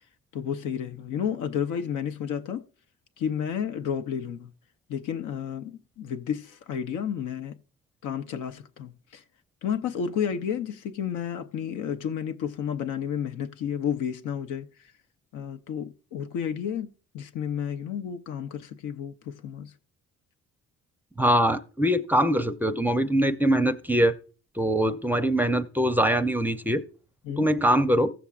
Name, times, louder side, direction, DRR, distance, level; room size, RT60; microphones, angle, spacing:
voice 1, 0.3-2.7 3.2-4.5 4.9-7.6 8.0-9.2 9.6-14.7 15.3-19.7 27.2-27.5, left 8 dB, 85° left, 0.8 m, -31 dB
voice 2, 21.2-24.2 24.6-26.8 27.4-28.1, equal, 5° right, 0.5 m, -23 dB
16.5 x 7.1 x 2.4 m
cardioid pair, 90°, 30 cm